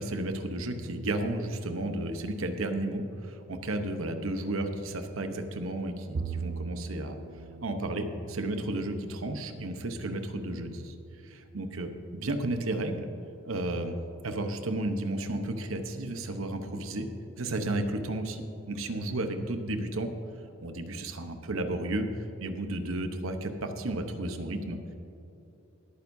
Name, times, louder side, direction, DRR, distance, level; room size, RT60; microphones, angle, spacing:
voice 1, 0.0-7.2 7.6-10.9 11.2-13.1 13.4-14.0 14.2-17.1 17.4-20.1 20.6-24.8, right 1 dB, 85° right, 6 dB, 1.0 m, -33 dB
Bowed string instrument, 6.1-12.5, right 5 dB, 50° right, 0.4 m, -42 dB
18.5 x 9.3 x 2.7 m, 3.0 s
head